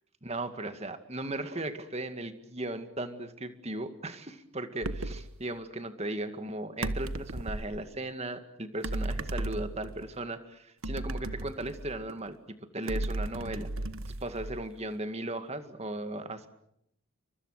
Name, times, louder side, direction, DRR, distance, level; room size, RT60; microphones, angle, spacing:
voice 1, 0.2-13.7 14.2-16.5, right 1 dB, 30° right, 9 dB, 2.1 m, -37 dB
sound 1, 4.8-5.3 6.8-7.8 8.8-10.1 10.8-12.2 12.9-14.8, right 2 dB, 75° right, 1.3 m, -35 dB
29.0 x 25.0 x 6.6 m, 0.74 s
head